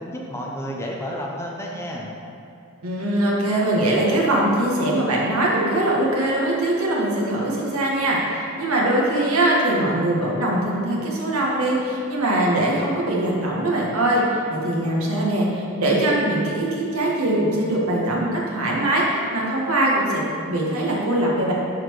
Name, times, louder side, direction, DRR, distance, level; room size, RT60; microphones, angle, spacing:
voice 1, 0.0-2.1, equal, 10° left, -2 dB, 0.8 m, -31 dB
voice 2, 2.8-14.2 14.5-21.5, right 1 dB, 80° right, -3 dB, 1.8 m, -22 dB
12.5 x 4.4 x 4.8 m, 2.5 s
head